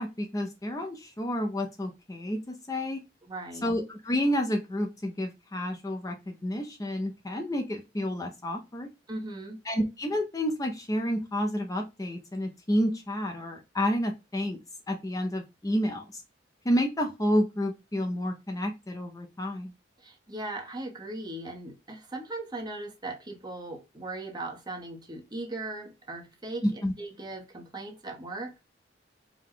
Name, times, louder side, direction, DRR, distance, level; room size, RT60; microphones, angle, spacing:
voice 1, 0.0-3.0 3.6-8.9 9.7-14.6 14.9-16.2 16.6-19.7 26.6-26.9, equal, 20° left, 0.5 m, -30 dB
voice 2, 3.2-3.7 9.1-9.6 20.0-28.5, right 2 dB, 25° right, 1.0 m, -38 dB
4.7 x 2.3 x 3.7 m
head